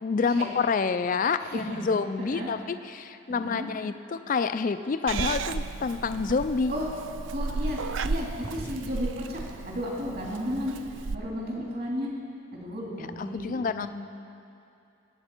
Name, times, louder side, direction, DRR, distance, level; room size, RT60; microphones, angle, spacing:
voice 1, 0.0-6.7 13.2-13.9, left 5 dB, 40° left, 11 dB, 0.3 m, -28 dB
voice 2, 1.4-1.9 2.2-2.5 3.3-3.7 6.7-6.9 7.3-10.8 11.1-12.1 12.5-13.9, equal, 45° right, -4 dB, 2.5 m, -33 dB
Purr / Meow, 5.1-11.1, right 4 dB, 65° right, 0.4 m, -34 dB
22.0 x 8.8 x 4.4 m, 2.7 s
head